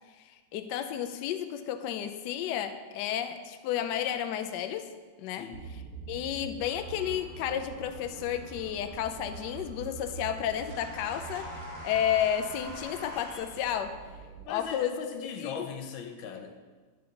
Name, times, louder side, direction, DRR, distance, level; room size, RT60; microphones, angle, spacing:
voice 1, 0.1-4.9 5.2-5.8 6.1-14.0 14.5-15.7, left 10 dB, 75° left, 7 dB, 1.1 m, -32 dB
sound 1, 5.5-14.4, right 5 dB, 60° right, 1.6 m, -45 dB
sound 2, 6.6-13.4, equal, 85° right, 2.5 m, -47 dB
voice 2, 14.4-16.6, left 6 dB, 90° left, 5 dB, 1.5 m, -39 dB
9.0 x 6.9 x 3.8 m, 1.4 s
omnidirectional pair, 2.1 m